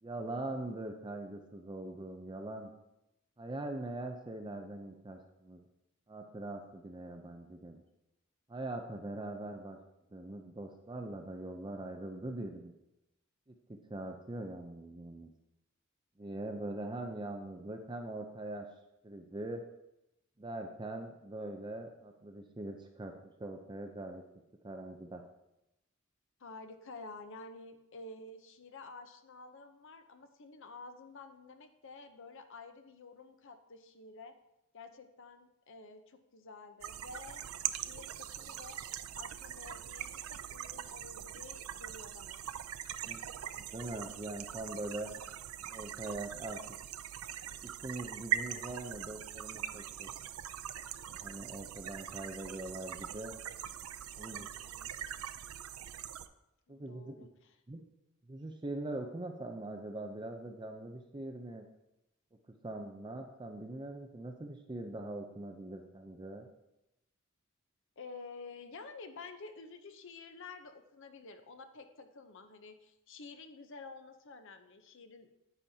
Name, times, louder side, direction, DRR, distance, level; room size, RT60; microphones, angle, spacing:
voice 1, 0.0-2.7 3.4-5.6 6.1-7.8 8.5-9.8 10.1-12.7 13.9-15.3 16.2-18.7 19.0-19.6 20.4-23.1 23.4-24.2 24.6-25.2 43.0-43.2 43.5-45.1 45.7-46.6 47.6-50.1 51.1-53.3 54.1-54.5 56.7-57.3 57.7-57.8 58.3-61.6 62.6-66.5, right 2 dB, 20° right, 4 dB, 0.5 m, -42 dB
voice 2, 26.4-34.3 34.7-38.8 39.2-42.4 54.1-54.9 56.7-57.6 68.0-75.3, left 3 dB, 60° left, 8 dB, 0.7 m, -50 dB
sound 1, 36.8-56.3, right 10 dB, 75° right, 0.4 m, -42 dB
9.8 x 8.8 x 2.8 m, 0.89 s
head